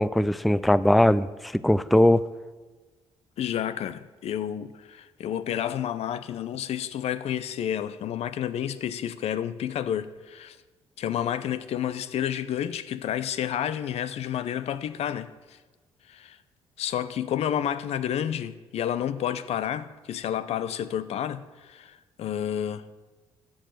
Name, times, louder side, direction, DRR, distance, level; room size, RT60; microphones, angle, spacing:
voice 1, 0.0-2.2, left 1 dB, ahead, 0.4 m, -20 dB
voice 2, 3.4-10.6 11.0-15.6 16.1-16.4 16.8-22.9, left 10 dB, 65° left, 0.6 m, -30 dB
13.0 x 4.8 x 7.5 m
supercardioid pair, 60°, 11 cm